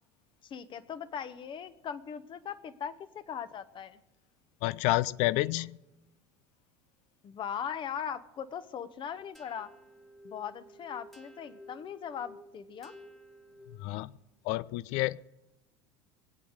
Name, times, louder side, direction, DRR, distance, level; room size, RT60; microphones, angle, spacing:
voice 1, 0.4-4.0 7.2-9.7 10.2-12.9, left 8 dB, 35° left, 13 dB, 1.0 m, -39 dB
voice 2, 4.6-5.8 13.8-14.1 14.5-15.2, left 19 dB, 55° left, 20 dB, 0.4 m, -29 dB
sound 1, 9.3-14.1, equal, ahead, 1.5 m, -53 dB
21.0 x 8.7 x 6.5 m, 1.0 s
figure-of-eight pair, 70°, 13 cm